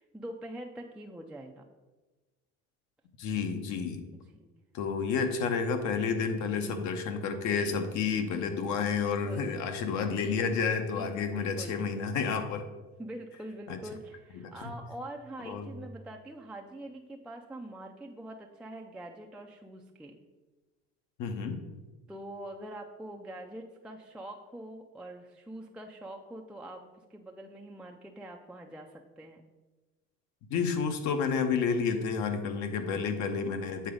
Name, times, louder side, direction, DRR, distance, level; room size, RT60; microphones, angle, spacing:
voice 1, 0.0-1.6 4.1-4.5 6.2-6.8 7.5-7.9 9.0-9.7 10.9-11.8 13.0-20.1 22.1-29.4 32.8-33.1, right 1 dB, 5° right, 1 dB, 0.4 m, -44 dB
voice 2, 3.2-4.0 4.7-12.6 13.7-13.8 14.6-14.7 15.5-15.7 21.2-21.6 30.5-33.9, left 5 dB, 65° left, 7 dB, 1.0 m, -30 dB
8.0 x 3.9 x 5.1 m, 1.2 s
cardioid pair, 125°, 31 cm